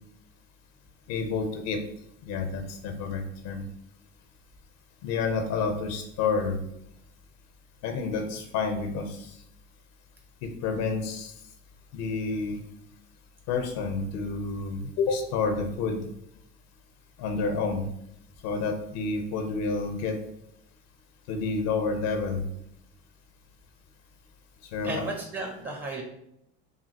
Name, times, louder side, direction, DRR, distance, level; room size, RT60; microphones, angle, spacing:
voice 1, 1.1-1.8 2.3-3.6 5.0-6.6 7.8-9.4 10.4-11.3 11.9-12.6 13.5-16.0 17.2-17.9 18.4-20.2 21.3-22.4 24.7-25.0, left 4 dB, 70° left, 5 dB, 0.7 m, -29 dB
voice 2, 24.8-26.0, right 2 dB, 30° right, 1 dB, 0.9 m, -34 dB
4.9 x 2.7 x 2.8 m, 0.78 s
hypercardioid pair, 75°, 35 cm